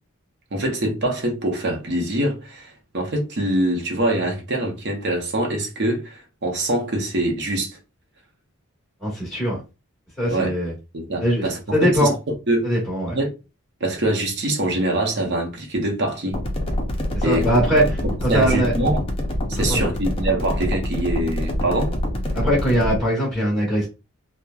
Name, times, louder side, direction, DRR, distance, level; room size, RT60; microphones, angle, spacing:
voice 1, 0.5-7.8 10.3-10.5 10.9-12.1 12.5-12.7 13.1-13.3 13.8-16.4 17.2-17.5 17.8-17.9 18.3-19.0 19.5-21.9, right 1 dB, 50° right, 0.7 m, -24 dB
voice 2, 9.0-9.6 10.2-10.7 11.2-12.1 12.6-13.2 17.1-17.8 18.3-18.7 19.5-19.9 22.3-23.9, equal, ahead, 1.1 m, -21 dB
sound 1, 16.3-23.0, left 1 dB, 25° left, 0.5 m, -25 dB
2.9 x 2.1 x 2.3 m
head